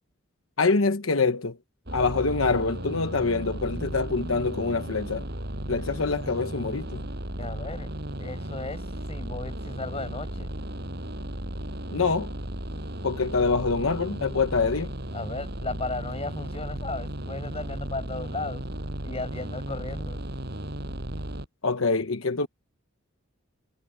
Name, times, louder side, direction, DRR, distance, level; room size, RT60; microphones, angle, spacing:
voice 1, 0.6-1.6 1.9-5.2 5.7-7.1 11.9-12.3 13.0-14.9 21.6-22.5, left 4 dB, 85° left, 1.1 m, -25 dB
sound 1, 1.9-21.5, equal, 55° right, 7.7 m, -35 dB
voice 2, 7.4-7.9 8.2-10.5 15.1-18.6 19.0-20.2, left 3 dB, 30° left, 7.6 m, -35 dB
head